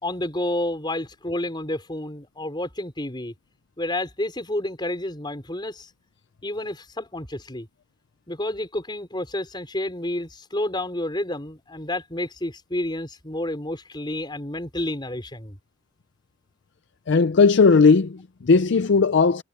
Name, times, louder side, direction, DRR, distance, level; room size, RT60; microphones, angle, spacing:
voice 1, 0.0-3.3 3.8-5.9 6.4-7.7 8.3-15.6, left 1 dB, 25° left, 4.6 m, -30 dB
voice 2, 17.1-19.4, left 4 dB, 60° left, 0.5 m, -17 dB
head